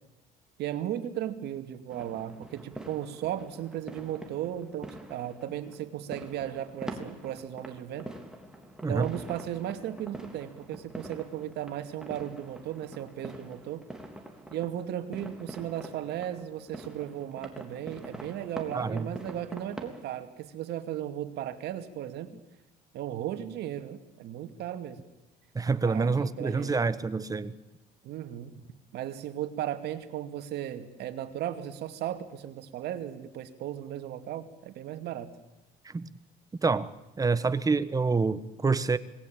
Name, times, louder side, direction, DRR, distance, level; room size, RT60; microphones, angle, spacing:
voice 1, 0.6-8.1 8.9-13.8 14.5-22.3 22.9-25.1 25.8-26.9 28.0-28.6 28.9-35.4, right 11 dB, 75° right, 8 dB, 2.4 m, -36 dB
sound 1, 1.9-20.0, right 1 dB, 5° right, 3.7 m, -45 dB
voice 2, 18.7-19.1 25.5-27.5 35.8-36.1 36.6-36.9 37.2-39.0, right 4 dB, 20° right, 14 dB, 1.3 m, -27 dB
26.5 x 20.0 x 8.9 m, 1.1 s
cardioid pair, 110°, 17 cm